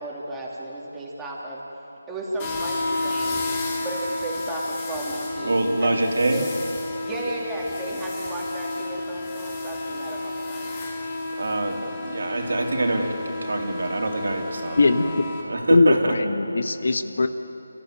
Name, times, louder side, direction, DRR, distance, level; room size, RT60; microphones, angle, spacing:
voice 1, 0.0-1.6 2.1-3.4 3.8-6.5 7.0-10.7, right 1 dB, 5° right, -5 dB, 3.2 m, -34 dB
sound 1, 2.4-15.4, left 2 dB, 20° left, 3.2 m, -31 dB
voice 2, 5.4-6.4 11.4-13.1 13.4-15.2 15.4-16.1, right 2 dB, 65° right, 1 dB, 3.5 m, -25 dB
voice 3, 14.8-15.1 15.7-17.3, left 3 dB, 60° left, 9 dB, 1.3 m, -20 dB
29.5 x 15.0 x 9.3 m, 3.0 s
figure-of-eight pair, 160°, 0 cm